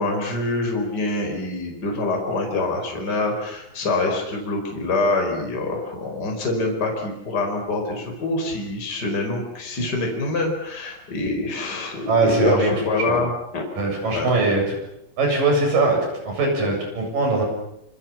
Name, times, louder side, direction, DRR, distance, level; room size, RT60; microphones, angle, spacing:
voice 1, 0.0-13.7 14.1-14.3, left 2 dB, 30° left, 2 dB, 5.2 m, -25 dB
voice 2, 12.1-12.7 13.1-13.2 13.8-14.8 15.2-17.4, right 3 dB, 75° right, 2 dB, 9.3 m, -21 dB
26.5 x 26.0 x 7.3 m, 0.82 s
omnidirectional pair, 3.9 m